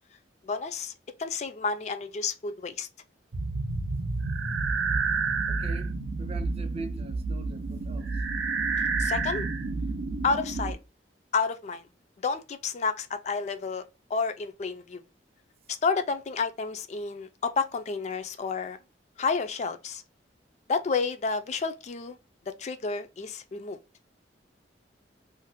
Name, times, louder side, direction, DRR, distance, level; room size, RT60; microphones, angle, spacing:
voice 1, 0.4-0.9 1.2-2.9 9.0-9.5 10.2-10.8 11.3-11.9 12.2-15.0 15.7-18.8 19.2-20.0 20.7-22.2 22.5-23.8, left 4 dB, 40° left, 0.3 m, -30 dB
sound 1, 3.3-10.7, right 4 dB, 80° right, 0.5 m, -29 dB
voice 2, 5.5-8.2, right 3 dB, 30° right, 0.4 m, -42 dB
2.5 x 2.1 x 4.0 m
head